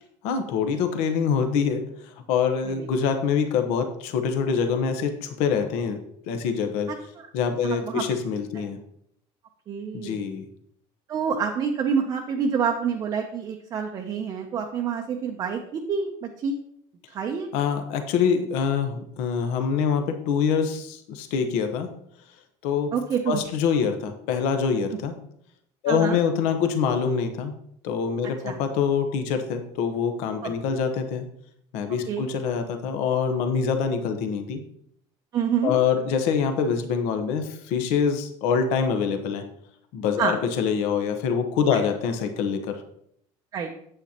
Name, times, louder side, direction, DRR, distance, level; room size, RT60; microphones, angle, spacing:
voice 1, 0.2-6.0 6.3-6.9 7.3-8.8 9.9-10.4 17.5-21.9 22.6-22.9 23.3-25.1 25.8-27.5 27.8-31.2 31.7-34.6 35.6-39.4 39.9-42.8, left 6 dB, 65° left, 6 dB, 1.1 m, -25 dB
voice 2, 7.6-8.0 9.7-10.2 11.1-16.6 17.1-17.5 22.9-23.4 25.9-26.2 28.4-28.6 30.4-30.5 32.1-32.3 35.3-35.7 40.2-40.3 41.7-41.8 43.5-43.7, right 6 dB, 30° right, 2 dB, 0.7 m, -27 dB
9.0 x 8.3 x 2.9 m, 0.70 s
cardioid pair, 175°, 13 cm